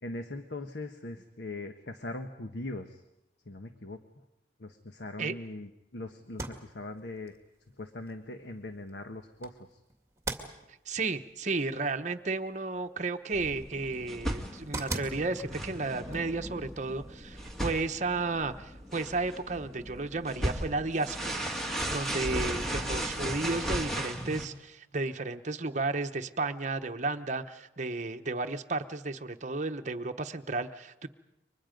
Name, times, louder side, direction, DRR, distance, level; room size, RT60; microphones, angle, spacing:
voice 1, 0.0-3.0 3.4-4.0 4.6-7.3 7.8-9.8 22.3-22.7, left 2 dB, 75° left, 6 dB, 1.3 m, -41 dB
sound 1, 6.2-17.9, right 3 dB, 15° right, 2.3 m, -45 dB
voice 2, 10.9-31.1, right 3 dB, 40° right, 6 dB, 1.0 m, -33 dB
sound 2, 13.3-24.5, right 1 dB, ahead, 2.3 m, -36 dB
29.5 x 24.5 x 5.2 m, 0.92 s
head